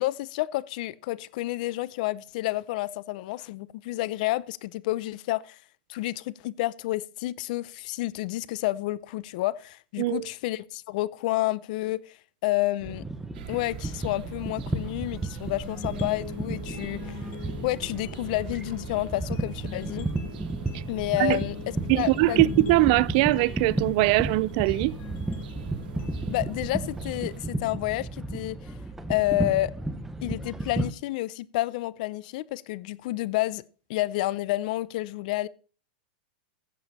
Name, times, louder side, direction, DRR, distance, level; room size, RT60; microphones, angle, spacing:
voice 1, 0.0-5.6 5.9-12.1 12.4-13.1 13.5-17.2 17.6-20.1 20.9-21.6 21.9-22.5 26.3-28.7 29.1-29.7 30.2-33.6 33.9-35.5, left 17 dB, 55° left, 0.6 m, -30 dB
sound 1, 12.8-30.9, right 2 dB, 5° right, 0.9 m, -33 dB
sound 2, 13.3-27.4, right 12 dB, 70° right, 1.0 m, -44 dB
sound 3, 15.7-27.7, left 7 dB, 35° left, 2.4 m, -44 dB
voice 2, 21.9-24.9, right 19 dB, 50° right, 0.4 m, -22 dB
14.5 x 7.2 x 4.2 m
supercardioid pair, 140°, 5 cm